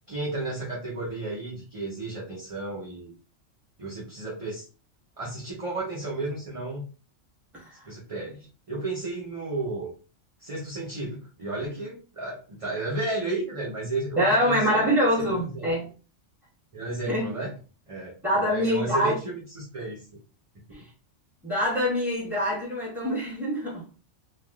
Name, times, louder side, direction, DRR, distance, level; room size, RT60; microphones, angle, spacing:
voice 1, 0.1-3.1 3.8-4.7 5.2-6.8 7.9-9.9 10.4-14.9 15.2-15.7 16.7-17.5 17.9-20.1 20.8-20.9, right 2 dB, 35° right, 0.7 m, -33 dB
voice 2, 14.2-15.9 17.1-17.3 18.2-19.1 20.7-20.8 21.4-24.1, equal, ahead, 1.3 m, -25 dB
3.3 x 2.3 x 2.3 m
omnidirectional pair, 1.3 m